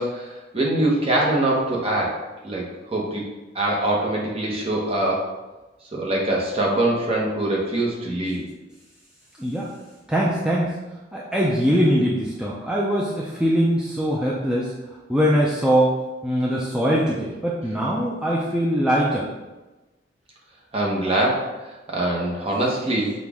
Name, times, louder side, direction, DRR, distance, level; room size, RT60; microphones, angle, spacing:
voice 1, 0.0-3.2 3.5-5.3 5.9-8.4 20.7-21.6 21.9-23.1, right 1 dB, 30° right, -2 dB, 0.9 m, -23 dB
voice 2, 9.4-9.7 10.1-10.7 11.1-15.9 16.2-19.3, equal, 5° right, -5 dB, 0.4 m, -22 dB
6.0 x 2.5 x 3.5 m, 1.1 s
head